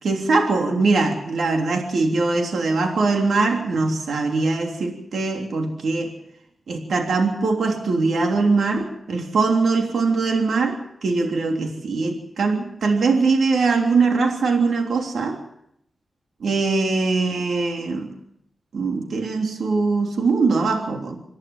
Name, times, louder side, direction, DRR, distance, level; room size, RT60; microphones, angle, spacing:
voice 1, 0.0-6.1 6.7-15.4 16.4-18.1 18.7-21.2, right 3 dB, 80° right, 2 dB, 3.4 m, -21 dB
27.0 x 11.5 x 9.0 m, 0.75 s
cardioid pair, 75°, 0 cm